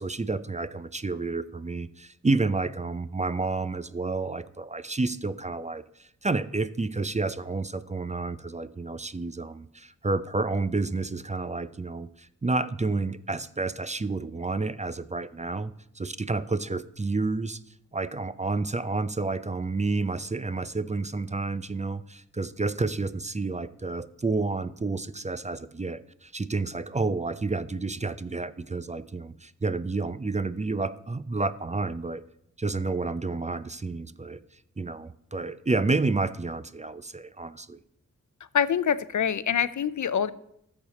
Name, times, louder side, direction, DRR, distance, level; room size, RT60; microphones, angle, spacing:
voice 1, 0.0-17.6 17.9-32.2 32.6-34.4 34.8-37.8, right 3 dB, 20° right, 14 dB, 0.5 m, -30 dB
voice 2, 38.5-40.3, left 8 dB, 65° left, 16 dB, 0.6 m, -25 dB
13.5 x 7.3 x 4.2 m, 0.75 s
cardioid pair, 50°, 32 cm